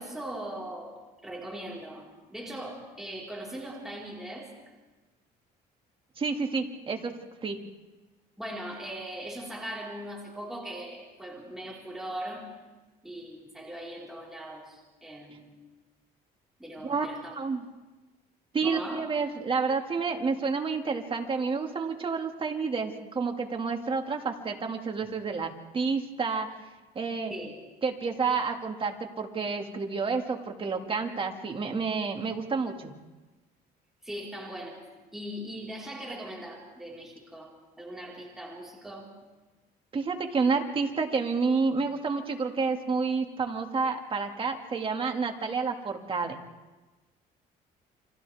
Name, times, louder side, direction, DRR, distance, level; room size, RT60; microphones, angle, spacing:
voice 1, 0.0-4.5 8.4-12.4 13.0-15.4 16.6-17.3 18.6-19.0 27.3-27.6 34.0-34.8 35.1-37.5 37.8-39.1, right 1 dB, ahead, -4 dB, 4.7 m, -40 dB
voice 2, 6.2-7.1 7.4-7.6 16.8-17.6 18.5-26.5 27.0-27.3 27.8-32.9 39.9-46.4, right 4 dB, 30° right, 3 dB, 2.3 m, -29 dB
30.0 x 25.5 x 3.6 m, 1.2 s
cardioid pair, 110°, 17 cm